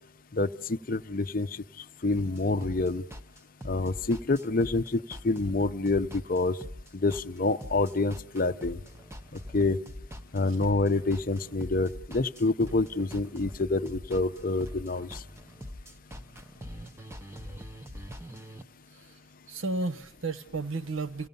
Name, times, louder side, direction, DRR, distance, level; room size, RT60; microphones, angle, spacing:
voice 1, 0.3-1.6 2.0-3.0 3.6-6.6 6.9-8.8 9.5-9.8 10.3-15.2, left 3 dB, 45° left, 0.6 m, -27 dB
sound 1, 2.2-18.6, equal, 15° right, 0.7 m, -44 dB
voice 2, 19.5-21.3, right 3 dB, 75° right, 0.8 m, -33 dB
29.5 x 17.5 x 5.4 m
head